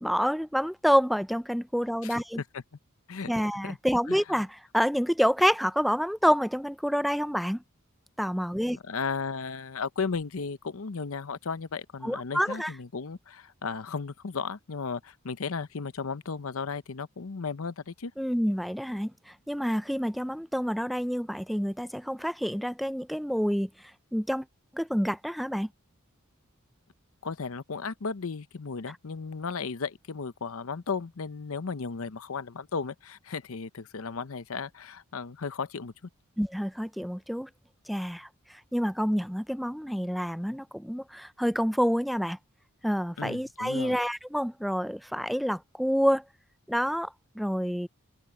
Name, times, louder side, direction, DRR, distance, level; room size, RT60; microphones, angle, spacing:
voice 1, 0.0-2.4 3.3-7.6 8.2-8.8 12.0-12.7 18.2-24.5 24.7-25.7 36.4-37.5 37.9-42.4 42.8-46.2 46.7-47.9, equal, ahead, 0.3 m, -28 dB
voice 2, 8.9-18.1 27.2-35.9 43.2-44.0, left 5 dB, 70° left, 0.7 m, -35 dB
head